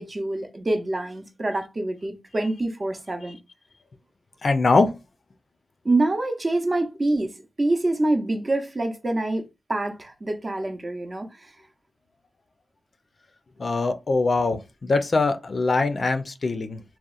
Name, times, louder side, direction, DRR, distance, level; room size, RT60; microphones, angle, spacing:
voice 1, 0.0-3.4 5.8-9.4 9.7-11.5, right 2 dB, 40° right, 0.6 m, -26 dB
voice 2, 4.4-4.9 13.6-16.8, left 3 dB, 60° left, 0.4 m, -22 dB
2.8 x 2.0 x 2.4 m
cardioid pair, 55°, 0 cm